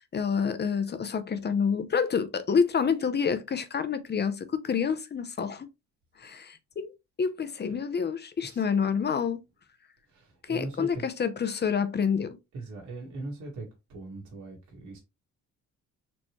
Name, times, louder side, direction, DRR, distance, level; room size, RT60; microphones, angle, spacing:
voice 1, 0.1-5.7 6.2-6.9 7.2-9.4 10.5-12.4, left 6 dB, 35° left, 0.7 m, -28 dB
voice 2, 10.1-11.0 12.5-15.0, right 2 dB, 75° right, 1.9 m, -40 dB
4.3 x 3.2 x 3.0 m
cardioid pair, 90°, 30 cm